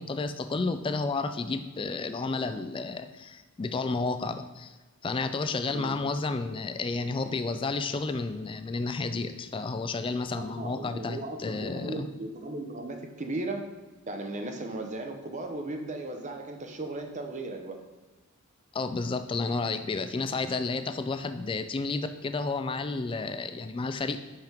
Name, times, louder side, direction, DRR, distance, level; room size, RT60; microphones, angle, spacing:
voice 1, 0.0-4.7 5.0-12.1 18.7-24.2, left 3 dB, 25° left, 10 dB, 0.3 m, -31 dB
voice 2, 10.4-13.7 14.1-17.8, right 2 dB, 35° right, 4 dB, 0.7 m, -36 dB
5.7 x 5.1 x 4.5 m, 1.2 s
head